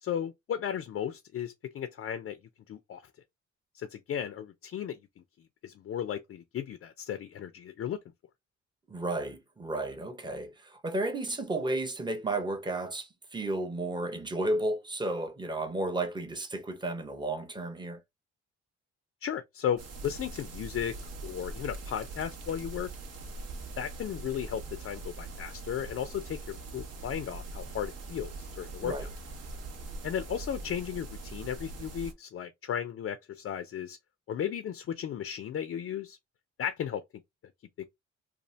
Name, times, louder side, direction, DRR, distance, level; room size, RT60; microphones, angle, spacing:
voice 1, 0.0-2.4 2.7-3.0 3.7-5.2 5.6-8.0 19.2-21.0 21.2-22.9 23.8-28.9 30.0-34.0 34.3-36.2 36.6-37.0 37.8-37.9, left 9 dB, 45° left, 0.5 m, -35 dB
voice 2, 8.9-18.0 28.8-29.1, right 2 dB, 15° right, 0.7 m, -33 dB
sound 1, 19.8-32.1, right 3 dB, 55° right, 0.8 m, -42 dB
2.7 x 2.4 x 3.0 m
cardioid pair, 90°, 30 cm